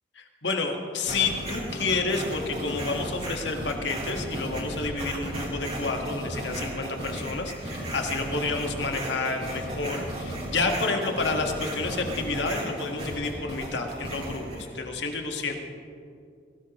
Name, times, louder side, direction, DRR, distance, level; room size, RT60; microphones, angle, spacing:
voice 1, 0.1-15.5, left 3 dB, 80° left, 2 dB, 1.8 m, -30 dB
sound 1, 1.1-14.7, right 1 dB, 35° right, 3.7 m, -35 dB
21.5 x 18.0 x 3.1 m, 2.4 s
head